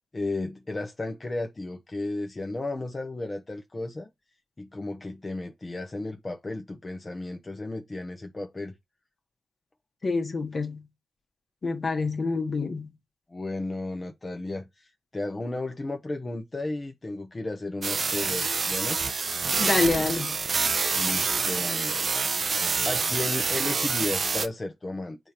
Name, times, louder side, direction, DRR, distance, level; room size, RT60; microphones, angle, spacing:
voice 1, 0.1-4.1 4.6-8.7 13.3-19.0 21.0-22.0 22.8-25.2, left 2 dB, 35° left, 1.0 m, -34 dB
voice 2, 10.0-10.9 11.6-12.9 19.6-20.5, left 3 dB, 50° left, 1.6 m, -27 dB
sound 1, 17.8-24.5, right 4 dB, 55° right, 0.7 m, -27 dB
7.6 x 2.9 x 5.1 m
supercardioid pair, 40°, 0 cm